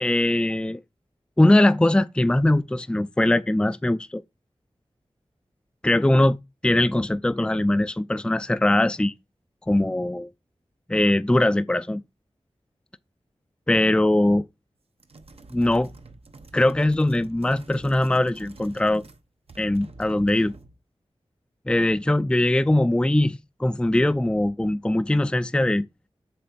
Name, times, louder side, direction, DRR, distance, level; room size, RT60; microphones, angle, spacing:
voice 1, 0.0-0.8 1.4-4.2 5.8-6.4 6.6-9.1 9.7-10.3 10.9-12.0 13.7-14.4 15.5-15.9 16.5-19.0 19.6-20.6 21.7-25.9, left 1 dB, 10° left, 0.4 m, -21 dB
sound 1, 15.0-19.2 19.5-20.8, right 3 dB, 65° right, 0.8 m, -47 dB
7.6 x 2.9 x 5.8 m
wide cardioid pair, 55°, 11 cm